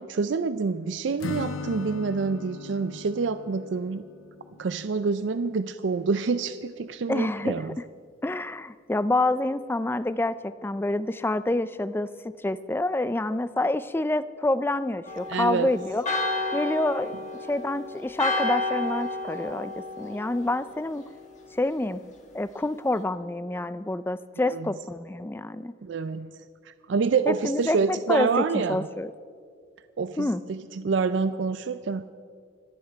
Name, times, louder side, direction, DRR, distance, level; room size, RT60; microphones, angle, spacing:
voice 1, 0.0-4.0 4.6-7.8 15.3-15.7 24.4-24.7 25.8-28.9 30.0-32.1, right 4 dB, 65° right, 12 dB, 0.4 m, -27 dB
Acoustic guitar / Strum, 1.2-5.1, left 4 dB, 85° left, 0.6 m, -38 dB
voice 2, 7.1-7.6 8.2-12.1 12.4-16.1 16.5-17.2 17.5-21.1 21.5-22.0 22.3-25.7 27.3-29.1 30.2-30.4, left 2 dB, 10° left, 14 dB, 0.3 m, -27 dB
Church bell, 15.1-20.8, left 2 dB, 35° left, 1.5 m, -31 dB
26.0 x 8.8 x 4.6 m, 2.1 s
head